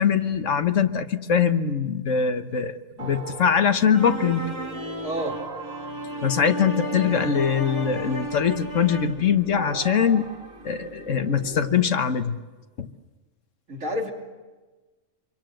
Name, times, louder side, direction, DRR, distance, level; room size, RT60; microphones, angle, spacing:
voice 1, 0.0-4.4 6.2-10.3 10.6-12.4 12.8-12.9, left 7 dB, 70° left, 9 dB, 1.5 m, -22 dB
sound 1, 3.0-11.7, right 2 dB, 90° right, 2.8 m, -39 dB
sound 2, 3.9-9.3, right 1 dB, 20° right, 2.4 m, -33 dB
voice 2, 5.0-5.4 13.7-14.1, equal, 75° right, 1 dB, 3.4 m, -29 dB
26.5 x 24.5 x 7.8 m, 1.3 s
omnidirectional pair, 1.4 m